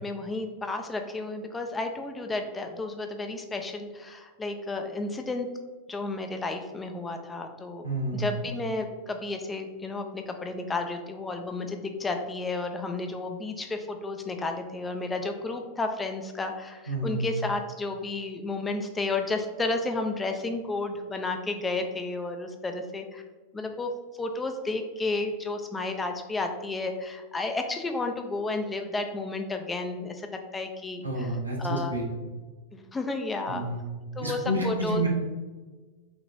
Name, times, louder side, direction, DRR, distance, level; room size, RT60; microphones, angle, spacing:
voice 1, 0.0-5.5 5.9-23.2 23.5-32.0 32.7-33.6 34.2-35.1, left 3 dB, 15° left, 5 dB, 0.5 m, -32 dB
voice 2, 7.8-8.3 16.9-17.3 31.0-32.0 33.5-33.8 34.2-35.1, right 1 dB, 85° right, -3 dB, 1.1 m, -29 dB
5.8 x 3.0 x 2.6 m, 1.3 s
figure-of-eight pair, 90°, 0 cm